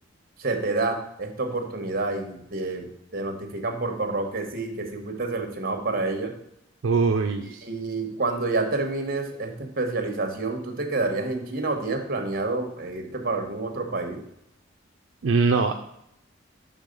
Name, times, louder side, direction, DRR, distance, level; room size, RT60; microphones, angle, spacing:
voice 1, 0.4-2.9 3.1-6.3 7.6-14.2, right 3 dB, 50° right, 4 dB, 1.1 m, -28 dB
voice 2, 6.8-7.6 15.2-15.7, right 4 dB, 80° right, 4 dB, 0.4 m, -22 dB
6.4 x 3.7 x 5.3 m, 0.77 s
head